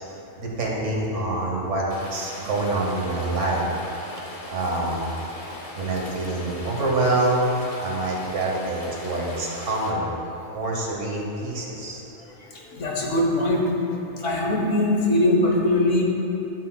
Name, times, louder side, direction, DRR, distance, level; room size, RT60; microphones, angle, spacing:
voice 1, 0.4-1.8 2.1-3.6 4.5-5.1 5.8-10.1 10.5-12.0, right 2 dB, 80° right, -2 dB, 1.4 m, -26 dB
Rain, 1.9-9.9, left 1 dB, 35° left, 0.7 m, -39 dB
voice 2, 12.7-13.7 14.2-16.0, left 1 dB, 90° left, -1 dB, 1.3 m, -21 dB
10.5 x 5.8 x 2.2 m, 2.9 s
omnidirectional pair, 1.2 m